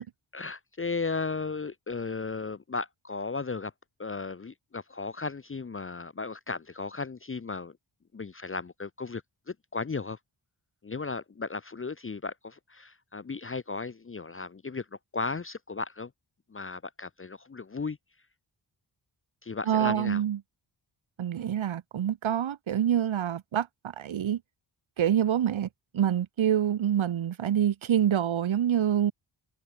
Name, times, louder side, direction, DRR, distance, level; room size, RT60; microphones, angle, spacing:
voice 1, 0.3-3.7 4.0-7.7 8.1-9.2 9.5-10.2 10.8-14.9 15.1-16.1 16.5-18.0 19.4-20.2, left 4 dB, 25° left, 0.8 m, -35 dB
voice 2, 19.7-20.4 21.2-23.7 24.0-24.4 25.0-29.1, right 10 dB, 85° right, 1.4 m, -26 dB
wide cardioid pair, 125°, 46 cm